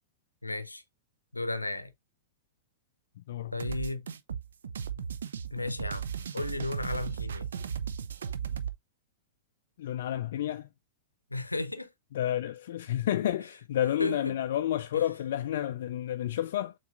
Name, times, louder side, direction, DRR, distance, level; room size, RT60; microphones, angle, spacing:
voice 1, 0.4-0.8 1.3-1.9 3.5-4.1 5.5-6.1 6.3-7.5 11.3-11.9 14.0-14.3 14.9-15.0, left 2 dB, 85° left, 0.7 m, -34 dB
sound 1, 3.6-8.8, right 7 dB, 65° right, 0.4 m, -36 dB
voice 2, 9.8-10.7 12.1-16.7, left 11 dB, 55° left, 0.3 m, -30 dB
7.0 x 2.9 x 2.4 m
figure-of-eight pair, 100°, 0 cm